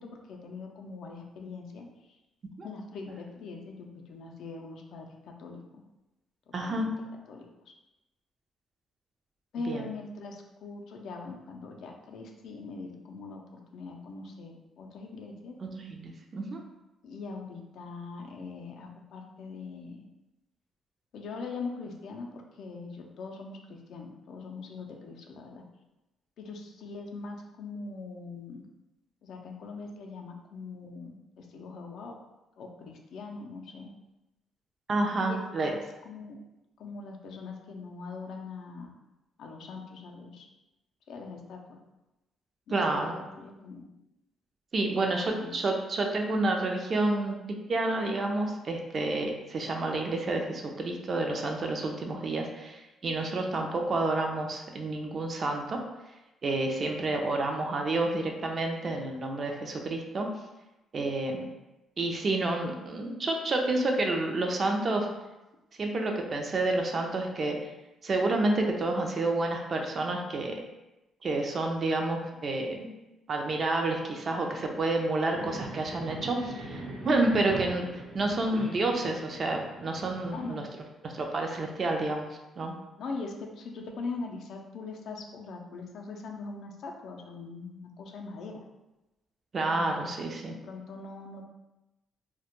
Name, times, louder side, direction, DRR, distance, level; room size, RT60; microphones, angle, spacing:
voice 1, 0.0-2.2 2.6-5.8 6.5-6.9 7.3-7.7 9.5-15.6 17.0-20.1 21.1-25.6 26.4-28.6 29.2-32.2 32.6-33.9 35.2-36.4 36.8-38.9 39.4-40.5 41.1-41.8 42.7-43.8 44.9-45.6 76.4-77.0 80.3-80.6 81.2-81.3 83.0-88.6 89.7-91.4, left 3 dB, 70° left, 1 dB, 0.4 m, -42 dB
voice 2, 6.5-6.9 9.7-9.8 15.6-16.6 34.9-35.7 42.7-43.1 44.7-55.8 56.4-60.3 60.9-61.5 62.0-65.1 65.8-67.6 68.0-70.5 71.2-72.9 73.3-76.5 77.0-77.9 78.1-80.6 81.0-82.3 82.6-82.8 89.5-90.6, right 2 dB, 45° right, 2 dB, 0.4 m, -29 dB
sound 1, 75.3-80.5, right 2 dB, 75° right, 0.8 m, -42 dB
2.2 x 2.1 x 2.9 m, 1.0 s
cardioid pair, 90°, 0 cm